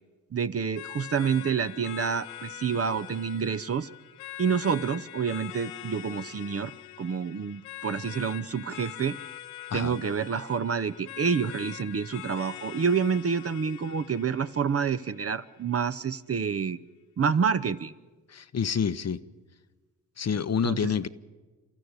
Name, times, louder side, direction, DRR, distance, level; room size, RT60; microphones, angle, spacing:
voice 1, 0.3-3.9 4.4-6.7 7.0-9.2 9.7-16.8 17.2-17.9 20.6-20.9, right 6 dB, 35° right, 0.8 m, -28 dB
sound 1, 0.8-15.7, left 14 dB, 80° left, 0.8 m, -43 dB
voice 2, 18.3-19.2 20.2-21.1, left 7 dB, 35° left, 0.9 m, -28 dB
27.5 x 14.0 x 8.2 m
hypercardioid pair, 45°, 44 cm